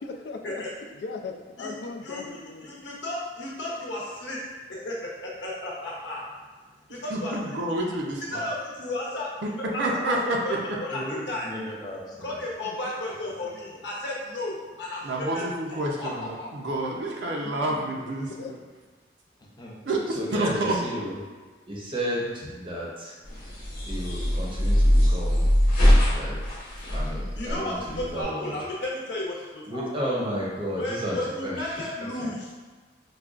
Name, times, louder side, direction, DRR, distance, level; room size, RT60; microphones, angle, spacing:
voice 1, 0.0-2.7 12.6-12.8 17.4-17.6 18.3-18.6, left 4 dB, 70° left, 3 dB, 0.3 m, -38 dB
voice 2, 2.6-4.4 4.7-6.3 6.9-7.6 8.3-11.5 12.2-15.4 15.7-16.7 27.4-29.3 29.7-29.8 30.8-32.5, left 1 dB, 85° left, -4 dB, 0.9 m, -33 dB
voice 3, 7.1-8.4 9.4-9.5 9.8-10.4 15.0-18.6 19.9-20.8, right 1 dB, 80° right, -1 dB, 0.5 m, -28 dB
voice 4, 10.9-12.5 16.7-17.4 19.6-20.2 23.4-23.5, left 1 dB, 20° left, -4 dB, 0.5 m, -41 dB
voice 5, 20.1-21.2 21.7-23.1 23.9-25.5 26.1-26.4 26.9-28.6 29.7-31.9 32.2-32.3, equal, 30° right, -5 dB, 0.6 m, -32 dB
sound 1, 23.2-28.2, equal, 50° left, 0.9 m, -22 dB
4.8 x 2.2 x 2.4 m, 1.4 s
head